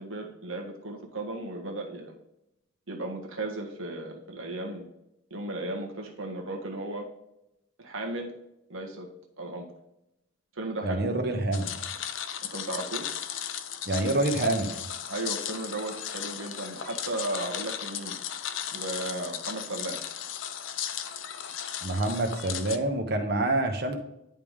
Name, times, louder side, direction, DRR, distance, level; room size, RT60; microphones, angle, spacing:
voice 1, 0.0-2.1 2.9-4.9 5.3-7.1 7.8-8.3 8.7-9.1 9.4-9.6 10.5-11.0 12.5-13.1 15.1-18.2 18.7-20.0, right 2 dB, 80° right, 1 dB, 1.6 m, -35 dB
voice 2, 10.8-11.8 13.9-14.8 21.8-24.0, right 2 dB, 50° right, 5 dB, 1.1 m, -27 dB
sound 1, 11.5-22.8, left 9 dB, 65° left, 0.5 m, -36 dB
10.5 x 3.6 x 3.2 m, 0.85 s
head